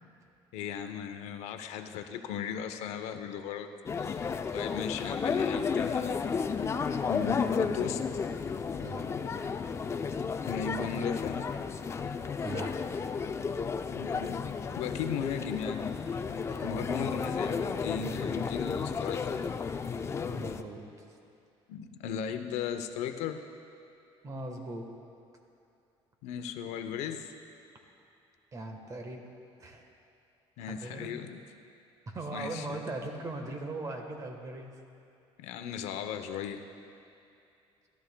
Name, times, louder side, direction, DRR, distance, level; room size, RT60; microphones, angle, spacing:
voice 1, 0.5-3.7 4.0-6.2 7.1-8.0 10.5-11.5 13.9-14.5 14.8-15.9 16.2-19.5 21.7-23.4 26.2-27.3 30.6-31.4 32.3-32.8 35.4-36.6, left 8 dB, 80° left, 8 dB, 0.7 m, -37 dB
sound 1, 3.9-20.6, left 5 dB, 25° left, 0.4 m, -33 dB
voice 2, 12.4-12.7 16.4-17.1 18.2-18.3 20.2-20.8 24.2-24.9 28.5-29.2 29.6-29.9 30.6-31.1 32.1-34.7, right 2 dB, 30° right, 3 dB, 1.3 m, -39 dB
17.0 x 12.5 x 2.2 m, 2.6 s
cardioid pair, 125°, 11 cm